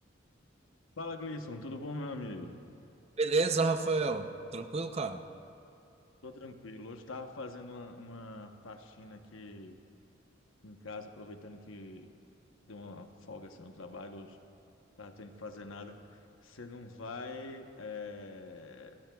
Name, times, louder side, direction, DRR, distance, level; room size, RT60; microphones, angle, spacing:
voice 1, 1.0-2.6 6.2-9.8 10.6-12.1 12.7-14.4 15.0-19.0, left 2 dB, 80° left, 5 dB, 1.0 m, -44 dB
voice 2, 3.2-5.2, right 3 dB, 30° right, 7 dB, 0.6 m, -30 dB
28.5 x 16.5 x 2.3 m, 2.6 s
head